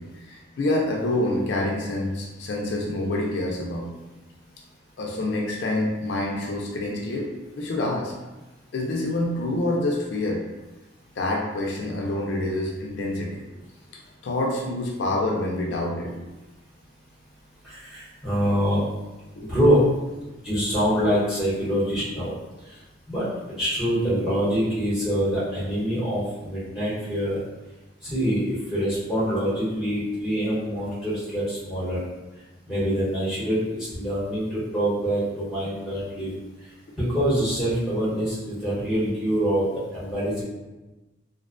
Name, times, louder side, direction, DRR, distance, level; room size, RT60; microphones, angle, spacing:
voice 1, 0.0-3.9 5.0-7.3 7.6-8.1 8.7-10.4 11.2-13.4 14.2-16.3 19.3-19.6 20.3-20.7 38.1-38.2, left 1 dB, 60° left, -1 dB, 0.3 m, -27 dB
voice 2, 17.6-18.8 19.4-19.9 20.4-22.3 22.6-22.8 23.1-23.3 23.6-27.4 28.0-32.0 32.7-36.4 37.0-40.4, equal, 5° right, -10 dB, 0.9 m, -25 dB
2.5 x 2.1 x 2.4 m, 1.1 s
head